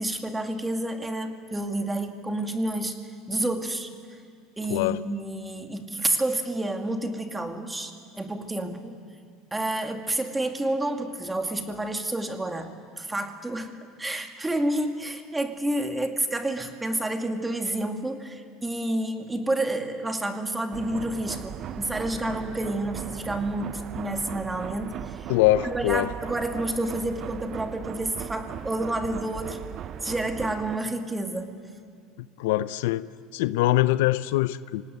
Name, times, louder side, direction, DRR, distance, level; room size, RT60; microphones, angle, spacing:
voice 1, 0.0-2.9 3.3-3.9 4.6-7.9 8.2-9.0 9.5-25.3 25.6-29.6 30.0-31.5, right 1 dB, 10° right, 2.2 m, -29 dB
voice 2, 4.7-5.0 25.3-26.1 32.4-33.1 33.3-34.8, left 16 dB, 85° left, 0.5 m, -23 dB
sound 1, 20.7-30.8, right 10 dB, 45° right, 0.6 m, -38 dB
25.5 x 18.0 x 9.5 m
supercardioid pair, 115°, 0 cm